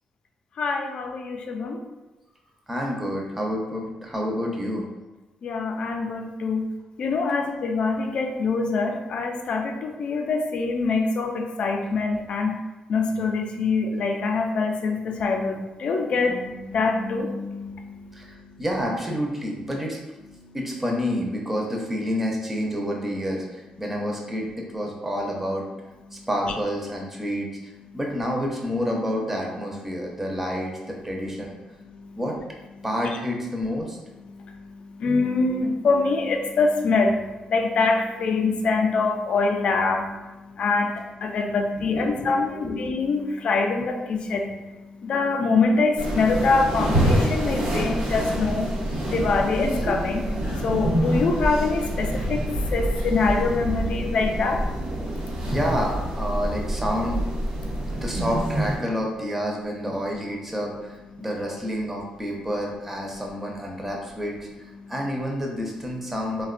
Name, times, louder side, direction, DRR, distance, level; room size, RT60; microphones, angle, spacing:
voice 1, 0.6-1.8 5.4-6.7 7.0-12.5 12.9-18.5 20.4-20.5 31.9-32.2 34.3-55.5 57.6-58.0 61.2-61.3 64.8-64.9, left 4 dB, 55° left, 4 dB, 0.3 m, -25 dB
voice 2, 2.7-4.9 18.1-20.0 20.5-25.6 26.1-31.6 32.2-32.4 32.8-34.0 41.9-42.8 46.9-47.0 55.4-57.2 57.9-66.5, equal, 10° right, -1 dB, 0.5 m, -29 dB
sound 1, 46.0-58.8, right 1 dB, 75° right, 0.9 m, -26 dB
3.3 x 2.1 x 2.4 m, 1.1 s
cardioid pair, 125°, 2 cm